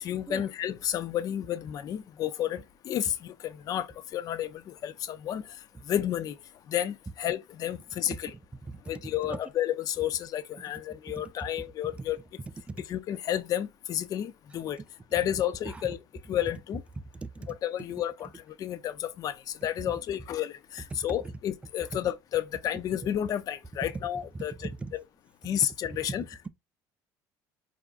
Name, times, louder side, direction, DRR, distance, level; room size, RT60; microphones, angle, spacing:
voice 1, 0.0-3.9 4.1-4.5 4.8-5.4 5.9-6.3 6.7-8.3 8.9-12.2 12.9-14.8 15.1-16.0 16.3-16.8 17.5-18.3 18.6-19.3 19.6-24.5 24.9-25.0 25.4-26.2, left 11 dB, 50° left, 0.5 m, -31 dB
voice 2, 8.7-9.4 11.2-11.3 11.6-11.7 12.7-12.9 15.7-15.9 17.1-17.5 20.9-21.3 21.9-22.0 23.8-24.0 24.3-25.0 25.9-26.5, right 3 dB, 15° right, 0.3 m, -39 dB
4.7 x 2.3 x 2.4 m
supercardioid pair, 105°, 8 cm